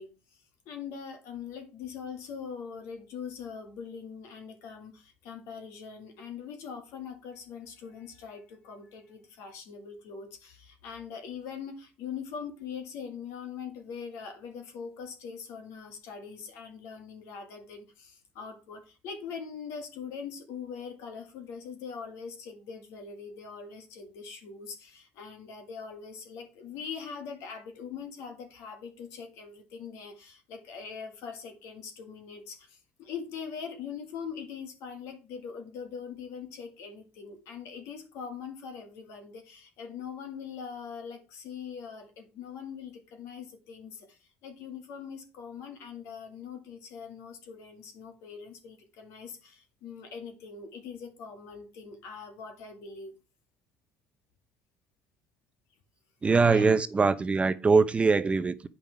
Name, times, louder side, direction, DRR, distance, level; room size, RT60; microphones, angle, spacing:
voice 1, 0.0-53.1 56.4-56.7, left 6 dB, 75° left, 2.1 m, -42 dB
voice 2, 56.2-58.7, right 4 dB, 25° right, 0.6 m, -22 dB
8.5 x 5.5 x 4.7 m
cardioid pair, 105°, 5 cm